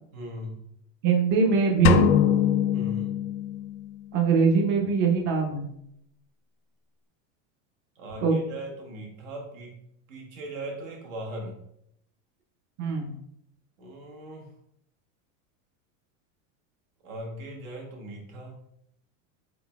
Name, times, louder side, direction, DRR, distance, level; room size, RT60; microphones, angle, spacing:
voice 1, 0.1-0.6 2.7-3.1 7.9-11.6 13.8-14.5 17.0-18.6, right 1 dB, 75° right, 0 dB, 1.4 m, -39 dB
voice 2, 1.0-2.1 4.1-5.7 8.2-8.3 12.8-13.1, right 5 dB, 30° right, 1 dB, 0.6 m, -22 dB
sound 1, 1.9-3.9, left 9 dB, 85° left, 0.5 m, -23 dB
4.2 x 3.8 x 2.3 m, 0.75 s
supercardioid pair, 170°, 39 cm